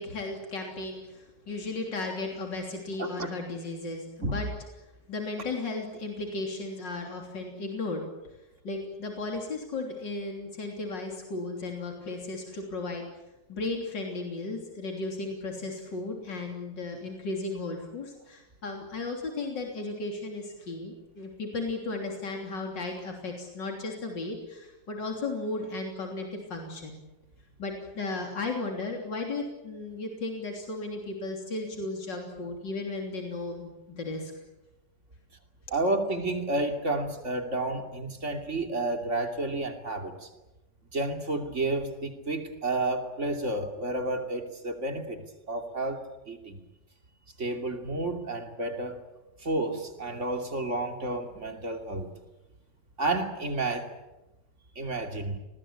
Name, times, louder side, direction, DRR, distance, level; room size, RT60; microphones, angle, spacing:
voice 1, 0.0-4.5 5.1-8.0 8.6-13.1 13.5-27.0 27.6-34.3, left 3 dB, 85° left, 2 dB, 4.0 m, -35 dB
voice 2, 35.7-40.3 40.9-45.2 45.5-46.6 47.4-49.0 49.4-52.1 53.0-53.9 54.8-55.4, right 2 dB, 40° right, 5 dB, 3.1 m, -31 dB
28.5 x 20.0 x 8.8 m, 1.0 s
omnidirectional pair, 1.9 m